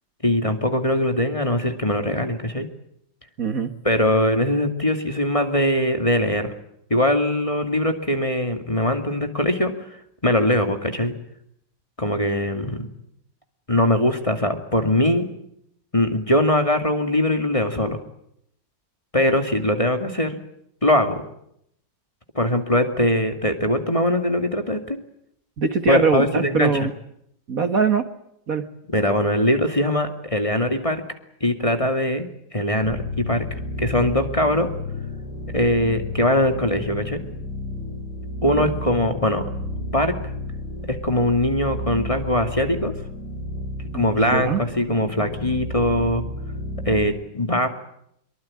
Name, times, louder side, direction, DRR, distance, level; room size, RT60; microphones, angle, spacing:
voice 1, 0.2-2.7 3.8-6.5 6.9-9.7 10.2-11.1 12.0-12.9 13.7-15.3 15.9-18.0 19.1-20.4 20.8-21.2 22.3-25.0 25.9-26.7 28.9-31.0 31.4-33.4 33.8-34.7 35.5-37.2 38.4-39.4 39.9-40.2 40.8-42.9 43.9-46.2 46.9-47.7, left 1 dB, 15° left, 6 dB, 2.4 m, -21 dB
voice 2, 3.4-3.7 25.6-26.9 27.5-28.0 28.5-28.6 38.5-38.7 43.9-44.0 44.3-44.6, right 5 dB, 50° right, 9 dB, 2.0 m, -22 dB
sound 1, 32.8-47.1, left 1 dB, 70° right, 7.4 m, -32 dB
24.0 x 23.5 x 8.7 m, 0.73 s
omnidirectional pair, 2.0 m